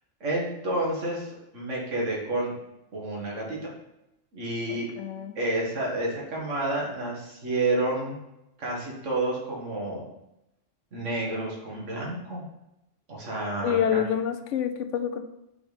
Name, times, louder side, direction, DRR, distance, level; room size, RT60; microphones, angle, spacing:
voice 1, 0.2-2.5 2.9-3.7 4.3-4.9 5.4-8.2 8.6-10.0 10.9-12.4 13.1-14.0, right 2 dB, 80° right, -3 dB, 2.0 m, -30 dB
voice 2, 4.7-5.4 13.6-15.2, left 9 dB, 80° left, 8 dB, 0.9 m, -27 dB
6.0 x 4.1 x 5.1 m, 0.88 s
omnidirectional pair, 1.3 m